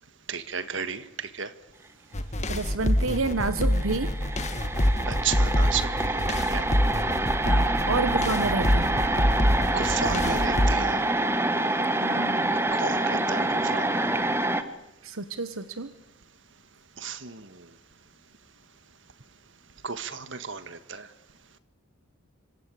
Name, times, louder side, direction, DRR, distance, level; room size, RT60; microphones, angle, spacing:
voice 1, 0.3-1.5 5.1-6.7 9.7-11.0 12.7-14.0 17.0-17.6 19.8-21.1, right 6 dB, 60° right, 11 dB, 1.7 m, -33 dB
sound 1, 2.1-10.7, equal, 35° left, 1.8 m, -26 dB
voice 2, 2.5-4.1 7.4-9.1 11.9-12.6 15.0-15.9, right 3 dB, 80° right, 11 dB, 1.2 m, -30 dB
sound 2, 3.3-3.4 3.6-14.6, right 2 dB, 10° right, 1.4 m, -26 dB
26.0 x 25.5 x 8.6 m, 0.94 s
head